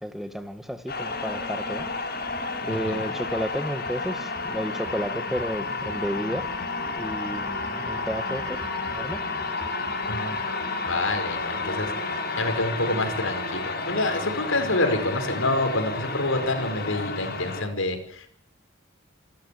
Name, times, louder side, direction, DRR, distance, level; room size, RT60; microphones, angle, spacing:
voice 1, 0.0-1.9 2.6-6.5 7.0-8.6 8.9-9.3, equal, ahead, 1.8 m, -32 dB
sound 1, 0.9-17.6, left 3 dB, 50° left, 6.4 m, -31 dB
voice 2, 2.7-3.1 10.1-10.4 10.7-18.3, left 2 dB, 75° left, 5.4 m, -27 dB
27.5 x 13.5 x 8.6 m
head